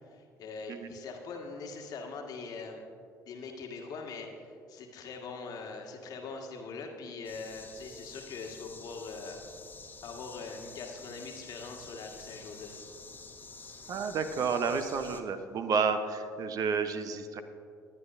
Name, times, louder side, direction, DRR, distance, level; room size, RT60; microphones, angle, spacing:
voice 1, 0.1-2.8 3.3-9.4 10.0-12.9, left 4 dB, 50° left, 2 dB, 1.6 m, -42 dB
sound 1, 7.2-15.2, left 4 dB, 20° left, 1.2 m, -49 dB
voice 2, 13.9-17.4, right 5 dB, 45° right, 9 dB, 0.8 m, -31 dB
21.5 x 9.8 x 2.6 m, 2.3 s
figure-of-eight pair, 50°, 8 cm